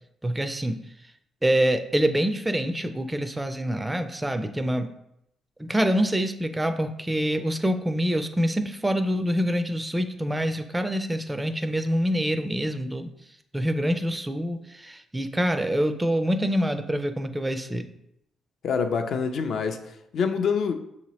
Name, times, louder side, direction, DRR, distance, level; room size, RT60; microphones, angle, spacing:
voice 1, 0.2-0.8 1.4-4.9 5.6-13.1 13.5-17.9, equal, 10° right, 8 dB, 0.4 m, -26 dB
voice 2, 18.6-20.7, left 6 dB, 65° left, 6 dB, 0.5 m, -26 dB
6.1 x 2.8 x 3.0 m, 0.79 s
cardioid pair, 90°, 0 cm